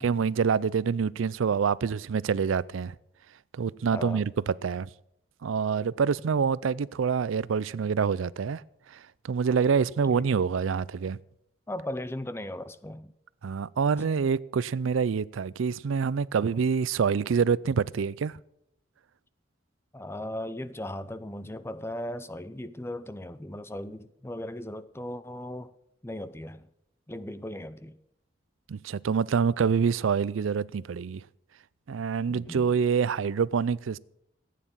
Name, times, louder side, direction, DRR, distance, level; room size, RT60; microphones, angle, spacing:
voice 1, 0.0-2.9 3.5-4.9 5.4-8.6 9.2-11.2 13.4-18.4 28.7-31.2 31.9-34.0, right 6 dB, 85° right, 0.4 m, -26 dB
voice 2, 3.9-4.2 10.0-10.3 11.7-13.1 19.9-25.7 26.0-26.6 27.1-28.0 32.3-32.7, left 1 dB, 10° left, 0.6 m, -37 dB
15.0 x 9.3 x 7.5 m
head